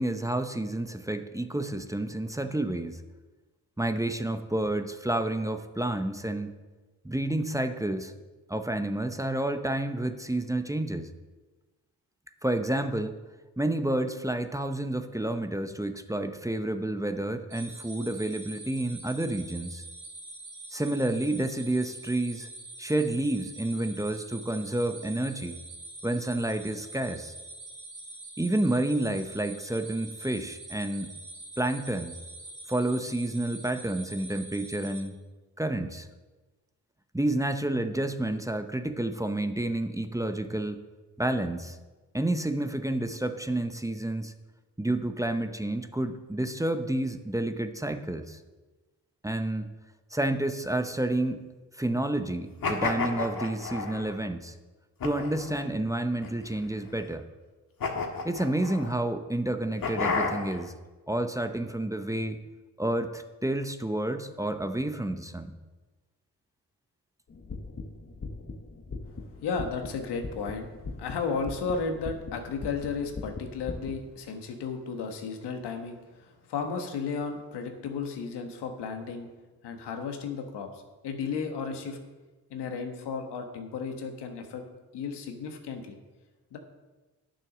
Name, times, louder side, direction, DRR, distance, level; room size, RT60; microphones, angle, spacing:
voice 1, 0.0-3.0 3.8-6.5 7.0-8.1 8.5-11.1 12.4-13.2 13.6-19.8 20.7-22.5 22.8-25.6 26.0-27.3 28.4-31.1 31.6-32.1 32.7-35.2 35.6-36.1 37.1-40.8 41.2-41.8 42.1-44.3 44.8-48.4 49.2-49.7 50.1-51.4 51.7-54.5 55.0-57.2 58.2-60.7 61.1-62.4 62.8-65.6, right 1 dB, 10° right, 7 dB, 0.8 m, -30 dB
sound 1, 17.5-35.0, right 2 dB, 70° right, 3.0 m, -44 dB
sound 2, 52.6-54.1 55.0-55.6 56.2-56.9 57.8-58.9 59.8-60.7, left 4 dB, 60° left, 1.7 m, -31 dB
sound 3, 67.3-73.9, left 3 dB, 35° left, 1.3 m, -40 dB
voice 2, 69.4-70.7 71.0-79.3 79.6-80.7 81.0-82.0 82.5-84.6 84.9-86.0 86.5-86.6, left 5 dB, 85° left, 5 dB, 1.3 m, -34 dB
9.1 x 7.1 x 6.1 m, 1.2 s
supercardioid pair, 55°, 39 cm